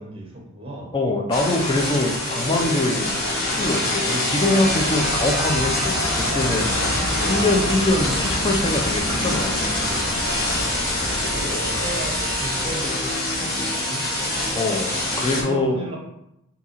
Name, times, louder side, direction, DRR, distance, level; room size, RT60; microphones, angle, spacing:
voice 1, 0.0-0.9 1.4-1.6 7.1-7.5 11.0-14.3 15.3-16.0, right 1 dB, 25° right, -1 dB, 0.9 m, -35 dB
voice 2, 0.9-9.6 14.5-15.8, left 2 dB, 20° left, 1 dB, 0.4 m, -24 dB
sound 1, 1.3-15.4, left 1 dB, 45° left, 1.2 m, -25 dB
Train, 4.4-13.6, equal, 85° left, 1.2 m, -31 dB
sound 2, 4.8-6.3, right 4 dB, 85° right, 0.5 m, -37 dB
3.5 x 2.8 x 4.2 m, 0.85 s
head